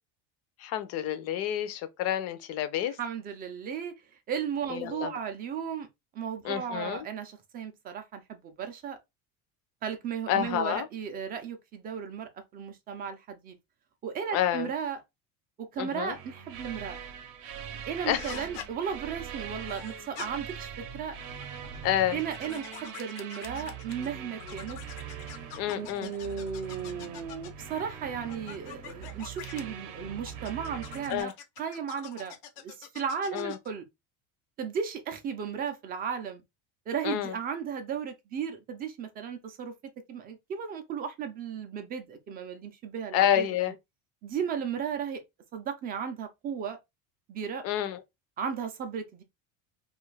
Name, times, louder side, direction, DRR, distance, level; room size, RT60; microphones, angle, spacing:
voice 1, 0.6-3.0 4.7-5.2 6.4-7.0 10.3-10.9 14.3-14.7 15.8-16.2 18.0-18.3 21.8-22.2 25.6-26.1 31.1-31.3 33.3-33.6 37.0-37.4 43.1-43.7 47.6-48.0, left 11 dB, 45° left, 0.4 m, -29 dB
voice 2, 3.0-3.9 4.3-5.9 6.1-9.0 9.8-13.5 14.0-15.0 15.6-17.0 17.9-21.2 22.1-24.8 25.7-31.3 31.6-32.3 32.6-33.8 34.6-36.4 36.9-39.7 40.1-43.5 44.2-45.2 45.5-46.8 47.3-47.6 48.4-49.2, right 7 dB, 25° right, 0.3 m, -35 dB
sound 1, 16.0-31.2, right 8 dB, 60° right, 0.7 m, -42 dB
sound 2, 18.2-18.7 19.7-20.3 21.3-24.1 24.4-27.7 28.3-29.6 30.3-33.7, left 9 dB, 90° left, 0.7 m, -45 dB
2.5 x 2.4 x 3.1 m
cardioid pair, 170°, 35 cm